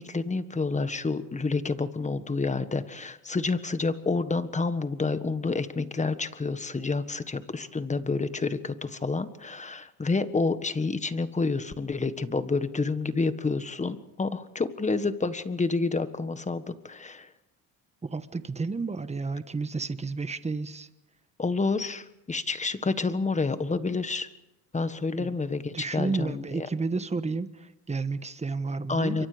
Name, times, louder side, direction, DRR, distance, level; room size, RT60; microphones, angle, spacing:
voice 1, 0.0-17.3 21.4-24.3 24.7-26.7 28.9-29.3, left 3 dB, 15° left, 12 dB, 1.5 m, -29 dB
voice 2, 18.0-20.9 25.2-25.4 25.7-29.3, right 4 dB, 15° right, 12 dB, 1.3 m, -31 dB
27.0 x 24.0 x 5.1 m, 0.92 s
cardioid pair, 105°, 41 cm